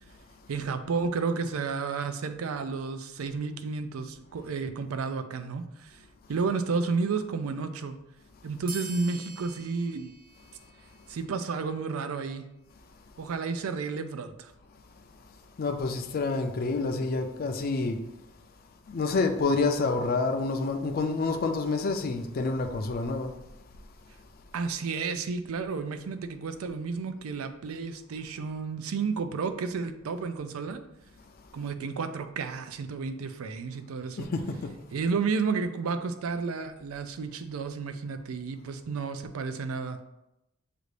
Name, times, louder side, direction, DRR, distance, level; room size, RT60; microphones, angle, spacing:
voice 1, 0.5-6.0 6.3-8.0 8.4-10.1 11.1-12.5 13.2-14.5 24.5-30.8 31.5-34.3 34.9-40.0, right 4 dB, 90° right, 0.4 m, -32 dB
sound 1, 8.7-11.7, right 3 dB, 45° right, 0.9 m, -45 dB
voice 2, 15.6-18.0 18.9-23.3 34.2-34.7, left 3 dB, 45° left, 0.4 m, -28 dB
6.6 x 2.5 x 3.2 m
head